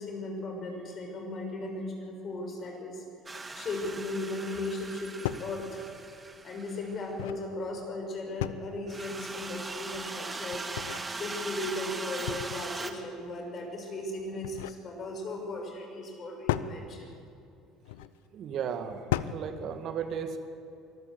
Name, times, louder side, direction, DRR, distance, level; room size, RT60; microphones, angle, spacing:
voice 1, 0.0-3.0 3.5-5.8 6.4-10.6 11.1-17.1, left 2 dB, 45° left, 2 dB, 6.2 m, -37 dB
sound 1, 3.3-7.1 8.9-12.9, right 3 dB, 20° right, 1.9 m, -40 dB
sound 2, 4.8-4.9 5.2-5.5 6.9-7.5 8.4-8.9 10.5-11.1 12.3-12.8 14.2-14.8 16.5-16.8 17.8-18.1 19.1-19.5, left 14 dB, 80° left, 0.6 m, -34 dB
voice 2, 18.3-20.4, right 7 dB, 55° right, 8 dB, 1.7 m, -35 dB
24.0 x 14.0 x 8.1 m, 2.7 s
hypercardioid pair, 70°, 0 cm